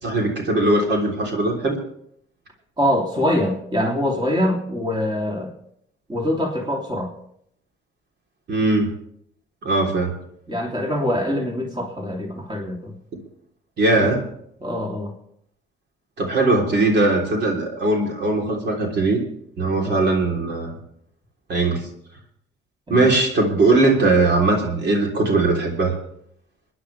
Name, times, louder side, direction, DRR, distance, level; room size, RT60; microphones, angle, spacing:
voice 1, 0.0-1.8 8.5-8.9 9.6-10.1 13.8-14.2 16.2-19.2 19.6-20.7 21.5-21.8 22.9-25.9, right 2 dB, 60° right, 0 dB, 3.5 m, -20 dB
voice 2, 2.8-5.5 6.1-7.1 10.5-12.9 14.6-15.1 19.8-20.0 22.9-23.1, left 1 dB, 25° right, 0 dB, 3.1 m, -24 dB
28.0 x 10.0 x 3.4 m, 0.70 s
cardioid pair, 90°, 20 cm